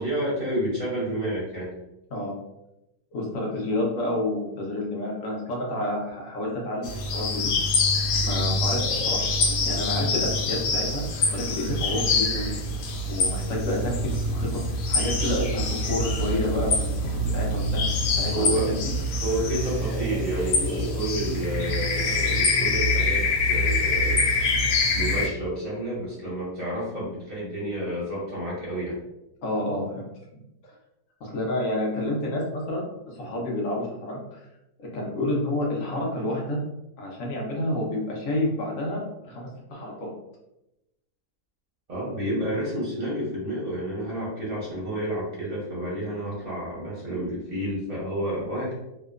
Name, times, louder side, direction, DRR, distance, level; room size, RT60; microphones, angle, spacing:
voice 1, 0.0-1.7 18.3-18.7 19.2-24.2 24.9-29.0 41.9-48.7, right 1 dB, 40° right, -7 dB, 0.6 m, -30 dB
voice 2, 3.1-7.5 8.2-9.3 9.6-11.0 11.3-12.5 13.1-14.6 14.9-17.6 18.2-18.7 29.4-30.0 30.3-30.7 31.2-32.8 33.1-34.5 34.8-36.6 37.0-40.1, left 1 dB, 60° left, -2 dB, 1.0 m, -29 dB
sound 1, 6.8-25.3, left 2 dB, 85° left, 1.2 m, -25 dB
2.9 x 2.1 x 2.3 m, 0.90 s
omnidirectional pair, 1.7 m